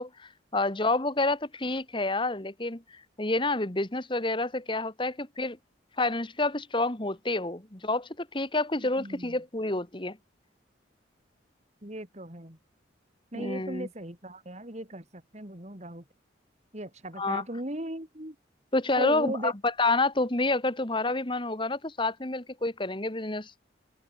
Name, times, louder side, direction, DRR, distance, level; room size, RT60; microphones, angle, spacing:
voice 1, 0.0-2.8 3.2-5.6 6.0-10.2 13.3-13.9 17.2-17.4 18.7-23.5, left 2 dB, 25° left, 1.7 m, -28 dB
voice 2, 8.8-9.3 11.8-12.6 13.3-16.0 16.7-18.3 19.0-19.5, right 1 dB, 35° right, 3.2 m, -37 dB
head